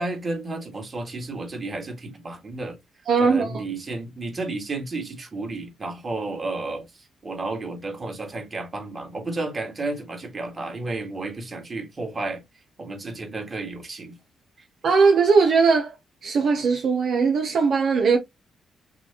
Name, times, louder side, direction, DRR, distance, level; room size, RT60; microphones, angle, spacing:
voice 1, 0.0-2.8 3.2-12.4 12.8-14.2, right 2 dB, 35° right, 1.9 m, -32 dB
voice 2, 3.1-3.5 14.8-16.0 16.2-18.2, right 5 dB, 65° right, 0.8 m, -19 dB
6.0 x 2.4 x 2.8 m
cardioid pair, 75°, 0 cm